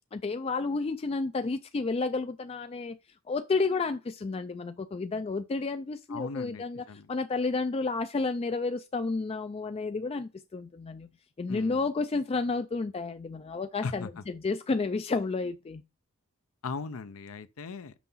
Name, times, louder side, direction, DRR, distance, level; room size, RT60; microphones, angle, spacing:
voice 1, 0.1-3.0 3.3-11.1 11.4-15.8, left 3 dB, 25° left, 0.3 m, -31 dB
voice 2, 6.1-7.1 11.5-11.8 13.8-14.1 16.6-17.9, left 4 dB, 75° left, 0.6 m, -38 dB
6.1 x 5.7 x 5.5 m
head